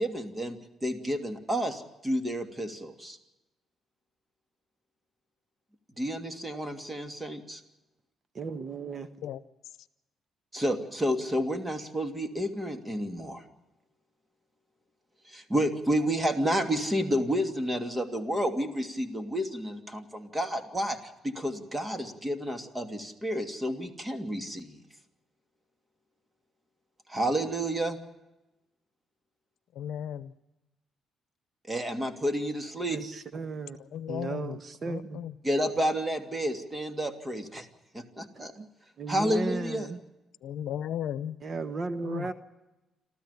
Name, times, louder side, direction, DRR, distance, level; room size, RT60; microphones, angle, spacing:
voice 1, 0.0-3.2 6.0-7.6 10.5-13.4 15.3-24.8 27.1-28.0 31.7-33.0 35.4-37.7 37.9-38.5 39.1-39.9, equal, 15° right, 2.8 m, -30 dB
voice 2, 8.3-9.1 32.9-33.8 34.1-35.2 38.3-38.7 39.0-40.0 41.4-42.3, right 4 dB, 45° right, 1.3 m, -35 dB
voice 3, 29.7-30.3 33.8-34.6 34.9-35.3 40.4-41.4 42.0-42.3, left 10 dB, 80° left, 0.8 m, -35 dB
29.0 x 13.5 x 8.4 m
cardioid pair, 90°, 0 cm